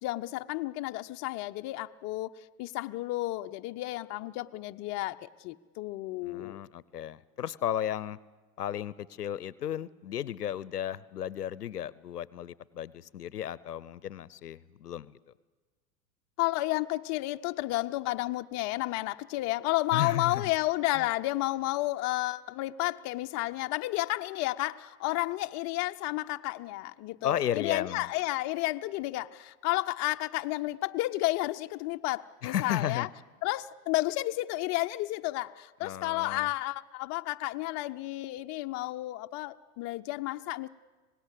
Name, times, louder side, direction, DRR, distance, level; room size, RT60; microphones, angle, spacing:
voice 1, 0.0-2.3 2.6-6.6 16.4-33.1 33.4-40.7, left 18 dB, 35° left, 8 dB, 0.7 m, -32 dB
voice 2, 6.2-8.2 8.6-15.1 19.9-20.4 21.0-21.1 27.2-28.0 32.4-33.1 35.8-36.5, left 10 dB, 90° left, 21 dB, 0.7 m, -34 dB
26.0 x 18.5 x 8.3 m, 1.3 s
hypercardioid pair, 95°, 46 cm